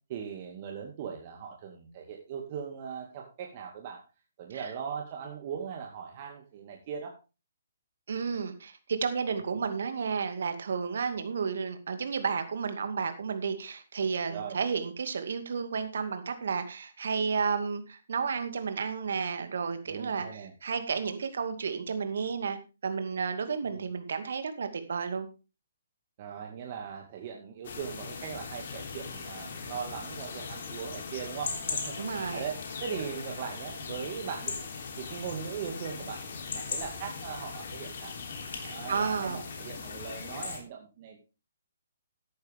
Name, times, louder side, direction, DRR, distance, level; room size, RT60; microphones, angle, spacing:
voice 1, 0.1-4.0 4.4-7.1 14.3-14.6 19.9-20.5 23.6-23.8 26.2-34.5 35.0-38.1 38.6-41.2, right 7 dB, 40° right, 2 dB, 2.3 m, -39 dB
voice 2, 8.1-22.6 22.8-25.3 32.0-32.4 38.5-39.4, right 5 dB, 65° right, 8 dB, 2.4 m, -32 dB
sound 1, 27.6-40.6, left 5 dB, 55° left, 3.5 m, -39 dB
13.5 x 10.5 x 3.6 m, 0.31 s
figure-of-eight pair, 135°, 0 cm